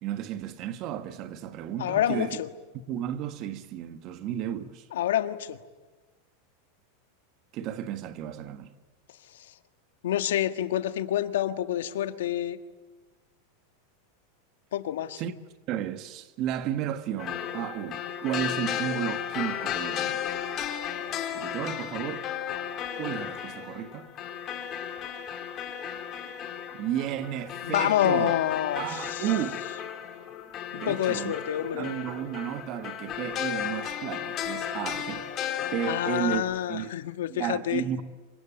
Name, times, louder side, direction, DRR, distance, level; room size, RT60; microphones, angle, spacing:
voice 1, 0.0-2.3 2.9-4.9 7.5-8.7 15.2-15.3 15.6-20.2 21.3-22.3 23.0-24.1 26.7-28.3 28.8-29.6 30.7-31.3 31.7-35.3 35.7-36.9 37.3-38.0, right 10 dB, 40° right, 1.5 m, -33 dB
voice 2, 1.8-2.5 4.9-5.6 9.3-9.5 10.0-12.6 14.7-15.2 27.6-29.3 30.7-32.0 35.9-37.8, left 11 dB, 85° left, 1.6 m, -28 dB
sound 1, 17.2-36.4, left 9 dB, 30° left, 3.6 m, -34 dB
27.0 x 24.5 x 8.9 m
supercardioid pair, 155°, 0 cm